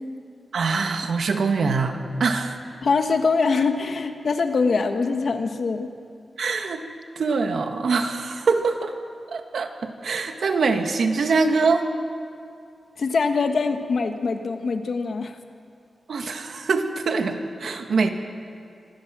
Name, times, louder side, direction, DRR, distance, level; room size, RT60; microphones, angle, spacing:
voice 1, 0.5-2.6 6.4-6.8 7.2-8.9 9.3-11.9 16.1-18.1, right 4 dB, 70° right, 6 dB, 1.7 m, -24 dB
voice 2, 2.8-5.9 13.0-15.4, left 4 dB, 55° left, 6 dB, 1.5 m, -23 dB
26.0 x 16.0 x 7.5 m, 2.4 s
wide cardioid pair, 155°, 0 cm